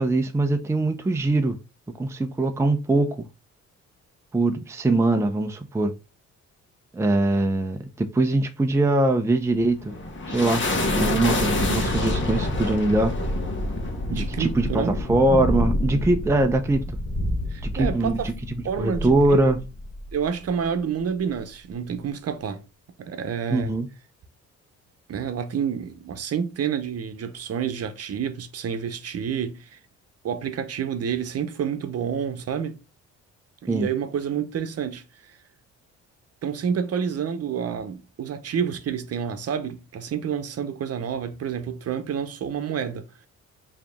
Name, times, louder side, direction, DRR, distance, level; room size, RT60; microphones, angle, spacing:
voice 1, 0.0-1.6 2.0-3.2 4.3-5.9 6.9-9.9 10.3-10.6 10.9-13.1 14.1-16.8 17.7-18.3 18.8-19.6 23.5-23.9 33.7-33.9, right 2 dB, 10° right, 0.5 m, -22 dB
sound 1, 9.5-20.2, left 1 dB, 40° left, 1.3 m, -27 dB
voice 2, 14.1-14.9 17.5-18.3 18.6-19.4 20.1-22.6 23.0-23.7 25.1-29.8 30.2-32.8 33.6-35.0 36.4-43.1, right 7 dB, 55° right, 0.8 m, -29 dB
4.8 x 2.9 x 3.4 m
cardioid pair, 90°, 30 cm